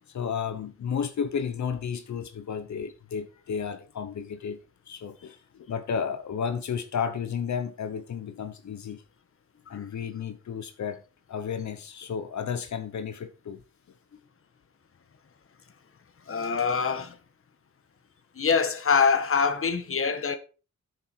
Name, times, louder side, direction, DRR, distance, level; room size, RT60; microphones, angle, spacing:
voice 1, 0.1-4.6 4.9-9.0 9.7-11.0 11.3-13.6, left 7 dB, 65° left, 1.0 m, -32 dB
voice 2, 16.3-17.1 18.3-20.4, left 5 dB, 45° left, 1.4 m, -24 dB
9.7 x 7.1 x 4.6 m
wide cardioid pair, 120°, 30 cm